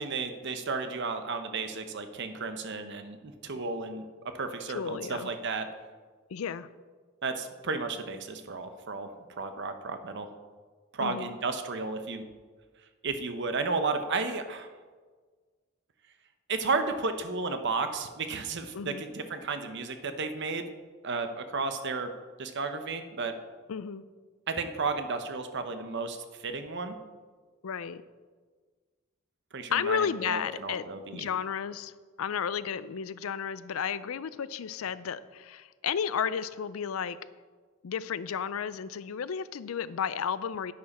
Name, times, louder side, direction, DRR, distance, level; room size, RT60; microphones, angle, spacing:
voice 1, 0.0-3.2 3.4-4.0 4.3-5.7 7.2-9.1 9.4-10.3 10.9-12.2 13.0-14.7 16.5-20.7 21.0-22.1 22.4-23.3 24.5-26.9 29.5-31.3, right 4 dB, 60° right, 8 dB, 0.9 m, -33 dB
voice 2, 4.7-5.3 6.3-6.7 11.0-11.3 18.7-19.0 23.7-24.0 27.6-28.0 29.7-30.9 31.1-37.2 37.8-40.7, left 7 dB, 85° left, 16 dB, 0.4 m, -32 dB
10.5 x 9.7 x 4.3 m, 1.5 s
head